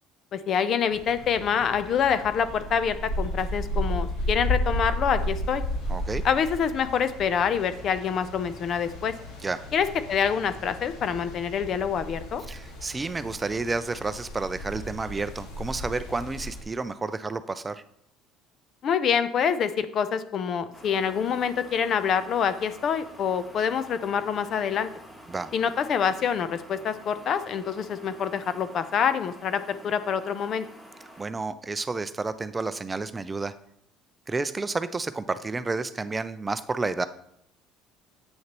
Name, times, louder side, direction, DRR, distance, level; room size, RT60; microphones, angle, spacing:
voice 1, 0.3-5.6 6.2-9.1 9.7-12.4 18.8-24.9 25.5-30.7, left 7 dB, 50° left, 12 dB, 0.5 m, -26 dB
sound 1, 0.9-16.6, left 1 dB, 80° left, 1.8 m, -34 dB
voice 2, 5.9-6.2 9.4-9.6 12.5-17.8 25.3-25.5 31.2-33.5 34.3-37.0, right 3 dB, 20° right, 12 dB, 0.4 m, -30 dB
sound 2, 20.7-31.3, equal, 20° left, 1.9 m, -48 dB
8.1 x 6.4 x 3.0 m, 0.72 s
supercardioid pair, 105°, 0 cm